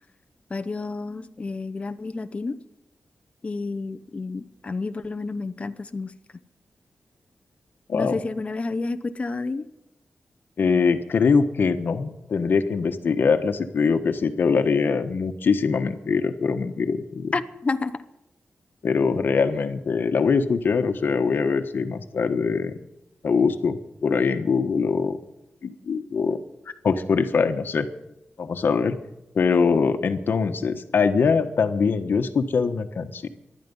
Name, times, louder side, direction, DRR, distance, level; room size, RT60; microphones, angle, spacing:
voice 1, 0.5-2.6 3.4-6.1 7.9-9.7 17.3-18.1, left 3 dB, 35° left, 10 dB, 0.8 m, -30 dB
voice 2, 10.6-17.3 18.8-22.8 23.2-25.2 25.6-26.4 26.8-27.9 28.4-29.0 29.3-33.3, left 5 dB, 65° left, 8 dB, 1.3 m, -22 dB
19.0 x 12.5 x 5.5 m, 0.92 s
wide cardioid pair, 110°, 4 cm